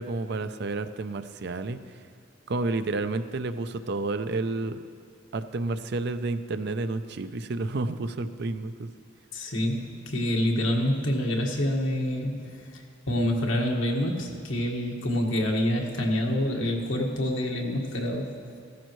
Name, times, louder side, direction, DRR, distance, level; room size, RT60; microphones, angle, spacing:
voice 1, 0.0-2.0 2.5-4.8 5.3-8.9, right 3 dB, 60° right, 10 dB, 0.5 m, -30 dB
voice 2, 9.3-18.3, left 1 dB, 80° left, 0 dB, 1.7 m, -27 dB
16.0 x 13.5 x 3.1 m, 2.5 s
head